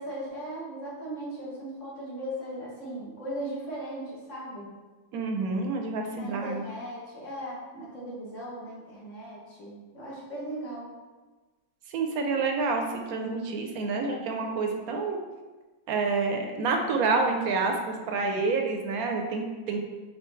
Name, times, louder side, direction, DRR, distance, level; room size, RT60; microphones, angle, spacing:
voice 1, 0.0-4.7 6.2-10.9, right 1 dB, 55° left, -6 dB, 1.4 m, -38 dB
voice 2, 5.1-6.6 11.9-15.2 15.9-19.8, right 4 dB, 75° right, 3 dB, 1.0 m, -28 dB
4.3 x 3.6 x 3.1 m, 1.3 s
omnidirectional pair, 1.7 m